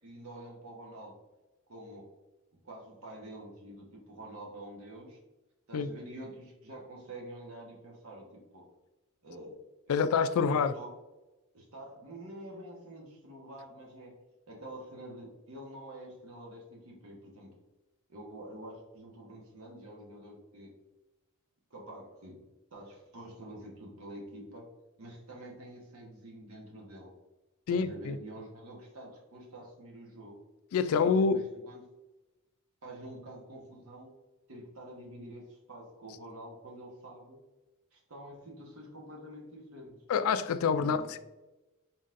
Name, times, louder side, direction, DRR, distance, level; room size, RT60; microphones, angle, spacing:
voice 1, 0.0-1.2 1.7-2.1 2.6-5.2 5.7-8.7 9.2-9.6 9.9-10.9 11.5-14.2 14.5-17.5 18.1-20.7 21.7-22.5 22.7-24.7 25.0-27.1 27.7-30.4 30.9-31.8 32.8-34.1 34.5-37.4 37.9-40.0 40.8-41.1, right 1 dB, 65° right, 1.2 m, -47 dB
voice 2, 9.9-10.7 27.7-28.2 30.7-31.4 40.1-41.2, left 5 dB, 65° left, 0.3 m, -27 dB
4.1 x 4.0 x 2.5 m
head